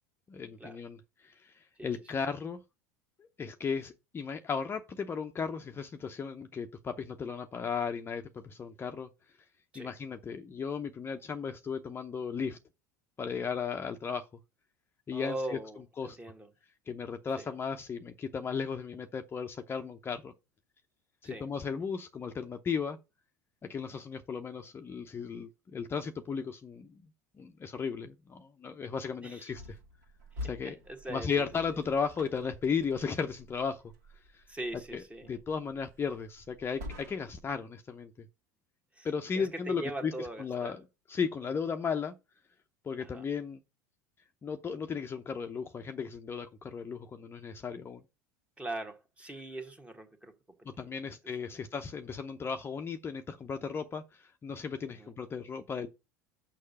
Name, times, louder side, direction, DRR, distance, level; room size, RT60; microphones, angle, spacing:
voice 1, 0.3-2.6 3.2-9.1 9.7-12.6 13.2-14.3 15.1-15.6 16.0-16.2 16.9-20.3 21.2-23.0 23.7-27.0 27.4-29.8 30.4-30.8 31.1-33.8 34.3-34.4 34.9-38.3 39.0-42.1 42.8-43.6 44.4-48.0 50.6-55.9, left 6 dB, 25° left, 0.7 m, -35 dB
voice 2, 15.1-16.5 17.4-17.5 21.2-21.5 29.2-29.5 30.6-31.4 34.5-35.3 39.0-39.1 39.3-40.7 43.0-43.2 48.6-50.3 51.1-51.2 51.5-51.6 55.0-55.1, right 1 dB, 15° right, 1.5 m, -41 dB
sound 1, 29.5-37.6, left 2 dB, 70° right, 2.1 m, -48 dB
6.5 x 5.6 x 5.4 m
figure-of-eight pair, 75°, 9 cm